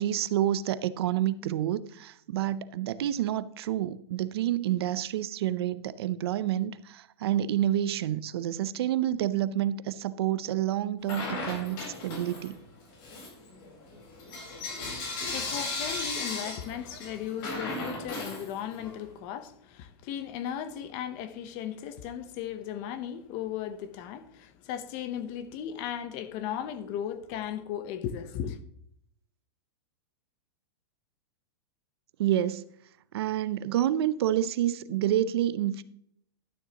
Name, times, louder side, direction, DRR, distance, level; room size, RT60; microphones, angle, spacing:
voice 1, 0.0-12.6 32.2-32.7 33.1-35.8, right 12 dB, 65° right, 0.6 m, -28 dB
Bell / Coin (dropping), 11.0-12.6 13.0-19.0, left 3 dB, 50° left, 4.6 m, -36 dB
voice 2, 15.2-28.6, left 9 dB, 35° left, 0.9 m, -36 dB
12.0 x 9.8 x 2.9 m
supercardioid pair, 155°, 14 cm